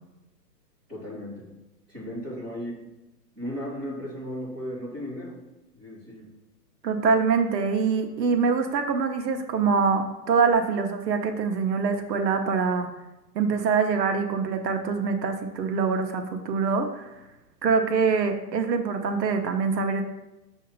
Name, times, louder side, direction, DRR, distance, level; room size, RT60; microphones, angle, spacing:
voice 1, 0.9-1.5 1.9-2.8 3.3-5.4 5.7-6.3, equal, 5° right, -13 dB, 1.8 m, -35 dB
voice 2, 6.8-12.9 13.3-17.0 17.6-20.0, right 5 dB, 80° right, 6 dB, 0.9 m, -24 dB
6.6 x 2.8 x 5.3 m, 0.97 s
hypercardioid pair, 180°, 50 cm